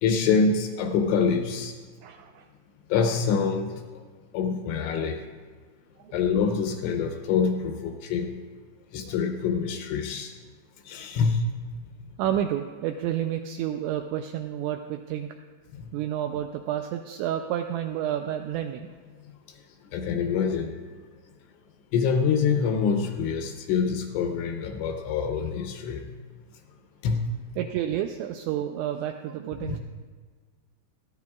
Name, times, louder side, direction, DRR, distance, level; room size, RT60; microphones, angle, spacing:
voice 1, 0.0-1.8 2.9-3.8 4.3-5.2 6.1-8.4 8.9-10.3 10.9-11.5 15.7-15.9 19.9-20.8 21.9-26.1 27.0-27.3 29.6-29.8, left 6 dB, 80° left, 5 dB, 2.8 m, -25 dB
voice 2, 2.0-2.5 6.0-6.4 9.1-9.2 12.2-15.3 15.9-18.9 27.6-29.8, right 11 dB, 85° right, 5 dB, 2.6 m, -30 dB
20.0 x 14.0 x 2.4 m, 1.5 s
omnidirectional pair, 5.7 m